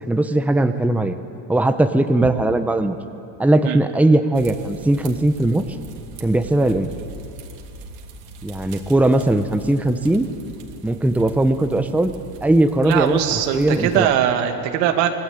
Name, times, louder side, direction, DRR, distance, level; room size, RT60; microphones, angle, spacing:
voice 1, 0.1-1.2 1.5-3.0 3.4-5.6 6.2-6.9 8.4-10.3 10.8-12.1 12.4-14.1, right 1 dB, 5° right, 8 dB, 1.0 m, -19 dB
sound 1, 4.3-14.0, right 2 dB, 65° right, 3.2 m, -40 dB
voice 2, 12.9-15.1, right 10 dB, 85° right, 5 dB, 2.4 m, -20 dB
25.5 x 18.5 x 9.3 m, 2.7 s
supercardioid pair, 120°, 49 cm